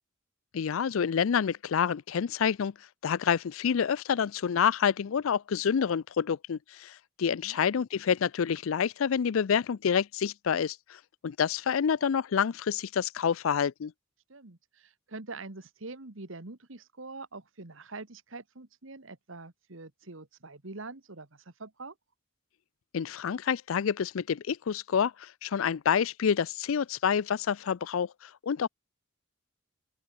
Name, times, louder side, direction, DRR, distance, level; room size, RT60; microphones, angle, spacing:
voice 1, 0.5-2.7 3.0-13.9 22.9-28.7, left 7 dB, 75° left, 0.4 m, -28 dB
voice 2, 14.3-21.9, right 3 dB, 70° right, 1.7 m, -44 dB
open air
head